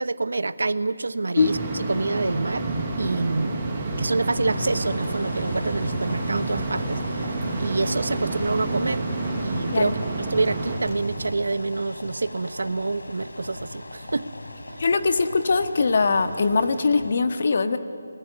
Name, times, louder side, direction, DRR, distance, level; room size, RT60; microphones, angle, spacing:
voice 1, 0.0-1.6 1.9-2.6 3.0-3.7 4.0-7.0 7.6-9.0 9.4-10.0 10.3-14.3, right 3 dB, 75° right, 13 dB, 1.1 m, -27 dB
sound 1, 1.3-10.8, right 2 dB, 15° right, 7.9 m, -30 dB
sound 2, 3.6-11.3, right 3 dB, 35° right, 3.5 m, -36 dB
sound 3, 4.5-17.1, left 1 dB, 90° left, 3.9 m, -39 dB
voice 2, 14.8-17.8, left 4 dB, 50° left, 8 dB, 1.6 m, -21 dB
29.5 x 20.0 x 9.8 m, 2.5 s
figure-of-eight pair, 170°, 0 cm